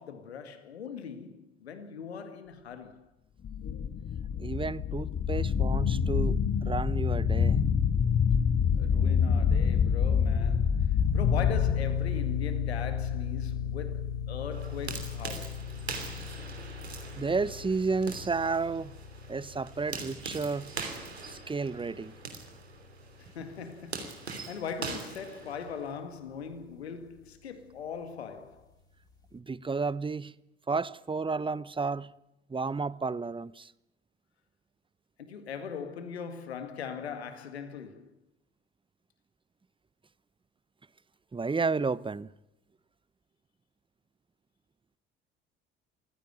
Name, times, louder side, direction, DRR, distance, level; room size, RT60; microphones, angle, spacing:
voice 1, 0.0-3.1 8.8-15.7 23.2-28.7 35.2-38.1, left 7 dB, 85° left, 2.1 m, -40 dB
sound 1, 3.4-11.7, left 7 dB, 40° left, 1.5 m, -26 dB
voice 2, 4.4-7.6 17.1-19.0 19.3-20.7 21.3-22.1 29.3-30.3 30.7-32.1 32.5-33.7 41.3-42.3, right 4 dB, 15° right, 0.9 m, -32 dB
sound 2, 11.0-25.4, left 7 dB, 10° left, 5.3 m, -35 dB
sound 3, 14.5-26.0, right 4 dB, 90° right, 3.1 m, -42 dB
24.0 x 16.0 x 9.3 m
figure-of-eight pair, 55°, 31 cm